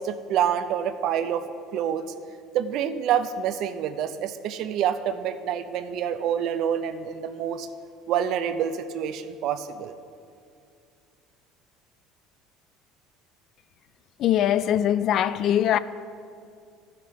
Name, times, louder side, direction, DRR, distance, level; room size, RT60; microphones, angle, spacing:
voice 1, 0.0-2.1 2.5-7.7 8.1-9.9, right 9 dB, 60° right, 0.4 m, -27 dB
voice 2, 14.2-15.8, left 11 dB, 55° left, 0.3 m, -22 dB
13.0 x 5.8 x 4.7 m
supercardioid pair, 110°, 0 cm